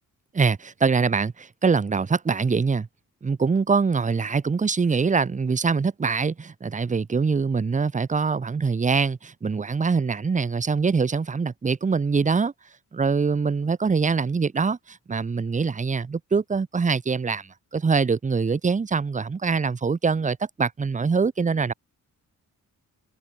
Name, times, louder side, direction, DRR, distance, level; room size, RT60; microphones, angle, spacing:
voice 1, 0.3-2.9 3.2-12.5 12.9-21.7, right 5 dB, 20° right, 0.8 m, -24 dB
wide cardioid pair, 130°, 35 cm